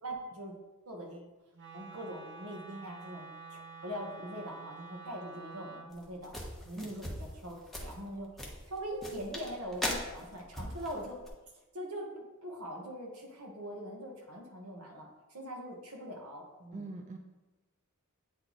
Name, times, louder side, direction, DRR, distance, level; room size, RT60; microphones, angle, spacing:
voice 1, 0.0-0.5 0.9-1.3 1.7-6.3 6.6-7.0 7.4-8.3 8.7-11.2 11.7-17.0, equal, 80° right, 0 dB, 1.2 m, -42 dB
Wind instrument woodwind instrument, 1.5-5.9, right 4 dB, 55° right, 0.8 m, -48 dB
sound 1, 5.9-11.3, left 1 dB, ahead, 0.8 m, -40 dB
voice 2, 6.8-7.1 16.7-17.2, right 2 dB, 35° right, 4 dB, 0.4 m, -42 dB
8.7 x 3.1 x 4.0 m, 1.1 s
head